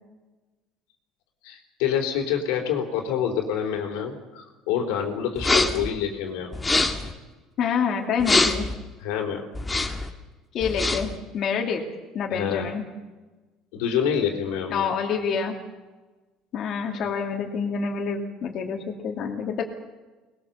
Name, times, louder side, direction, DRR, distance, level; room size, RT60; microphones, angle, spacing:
voice 1, 1.4-6.5 9.0-9.5 12.3-12.7 13.7-14.9, left 8 dB, 90° left, 4 dB, 3.9 m, -27 dB
sound 1, 5.4-5.9 6.5-7.1 8.2-8.7 9.6-10.1 10.6-11.2, left 2 dB, 15° left, 1.8 m, -23 dB
voice 2, 7.6-8.7 10.5-11.8 12.1-12.8 14.7-15.6 16.5-19.6, left 6 dB, 50° left, 2 dB, 2.5 m, -27 dB
22.0 x 20.5 x 7.2 m, 1.2 s
cardioid pair, 135°, 0 cm